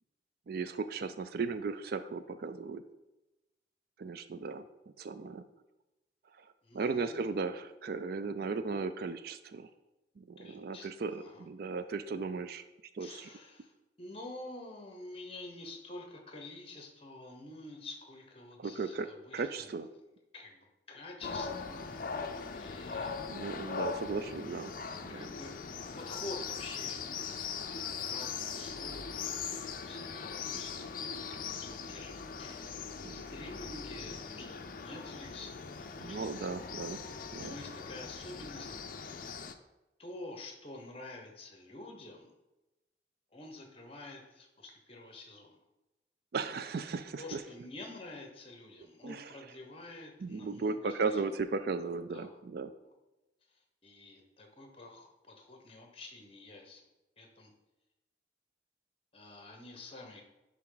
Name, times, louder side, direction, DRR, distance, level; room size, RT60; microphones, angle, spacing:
voice 1, 0.5-2.8 4.0-4.6 5.0-5.4 6.4-6.5 6.7-9.7 10.2-12.6 12.9-13.3 18.6-19.9 23.3-24.7 25.0-25.3 33.0-33.2 36.0-37.0 37.3-37.5 46.3-47.4 49.0-49.4 50.2-52.7, right 4 dB, 55° right, 11 dB, 0.4 m, -36 dB
voice 2, 6.6-7.3 10.4-11.5 13.0-19.7 20.3-22.1 22.4-23.2 25.1-27.1 27.7-29.5 29.9-32.7 33.1-36.4 37.3-38.7 40.0-42.3 43.3-45.6 47.2-51.3 52.1-52.4 52.8-52.9 53.8-56.8 57.2-57.5 59.1-60.2, left 2 dB, 30° left, 2 dB, 1.1 m, -48 dB
sound 1, 21.2-39.5, left 5 dB, 50° left, 0.5 m, -40 dB
10.5 x 3.6 x 3.9 m, 0.99 s
head